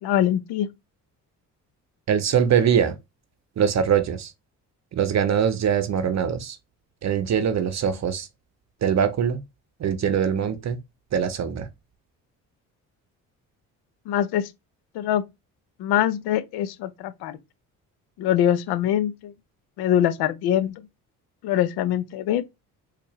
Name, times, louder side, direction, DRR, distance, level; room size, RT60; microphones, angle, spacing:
voice 1, 0.0-0.7 14.1-14.5 14.9-15.2 15.8-17.4 18.2-19.3 19.8-20.9 21.4-22.4, left 11 dB, 80° left, 0.6 m, -23 dB
voice 2, 2.1-3.0 3.6-4.3 4.9-6.6 7.0-8.3 8.8-9.4 9.8-10.8 11.1-11.7, right 8 dB, 45° right, 0.7 m, -22 dB
4.4 x 2.5 x 3.0 m
supercardioid pair, 65°, 38 cm